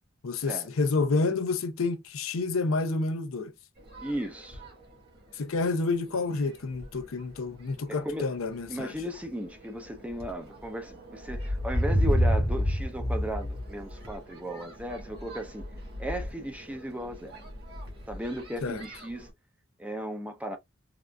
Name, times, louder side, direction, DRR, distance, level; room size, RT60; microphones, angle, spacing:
voice 1, 0.2-3.5 5.4-8.9 18.6-18.8, left 3 dB, 80° left, 0.6 m, -29 dB
sound 1, 3.8-4.8 5.5-5.6 6.1-6.4 6.7-7.3 8.0-8.2 8.6-19.3, equal, 50° right, 1.4 m, -32 dB
voice 2, 4.0-4.6 7.9-8.4 8.7-15.7 16.0-17.4 18.1-19.3 19.8-20.6, right 1 dB, 5° right, 0.5 m, -36 dB
3.7 x 2.4 x 2.2 m
head